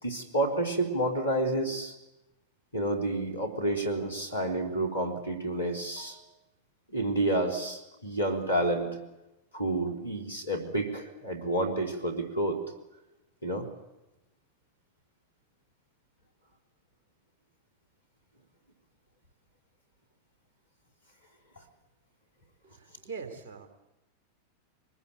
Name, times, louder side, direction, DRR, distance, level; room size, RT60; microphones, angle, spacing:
voice 1, 0.0-1.9 2.7-6.2 6.9-9.0 9.5-12.6 13.4-13.7, right 1 dB, 80° left, 1 dB, 3.5 m, -29 dB
voice 2, 22.6-23.7, right 5 dB, 50° right, 5 dB, 3.8 m, -42 dB
23.5 x 20.0 x 8.8 m, 0.99 s
figure-of-eight pair, 90°, 0 cm